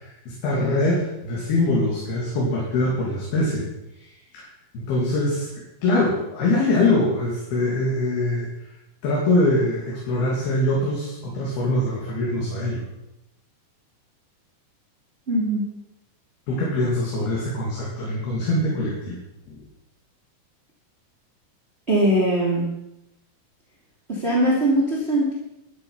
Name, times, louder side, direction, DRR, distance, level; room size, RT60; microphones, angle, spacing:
voice 1, 0.0-3.6 4.3-4.4 4.7-5.5 5.8-8.5 9.0-12.8 16.5-19.2 19.5-19.6, left 2 dB, 80° left, -4 dB, 4.7 m, -23 dB
voice 2, 15.3-15.6 21.9-22.6 24.1-25.3, right 1 dB, 20° right, -4 dB, 2.9 m, -21 dB
13.0 x 11.0 x 5.7 m, 0.88 s
omnidirectional pair, 4.4 m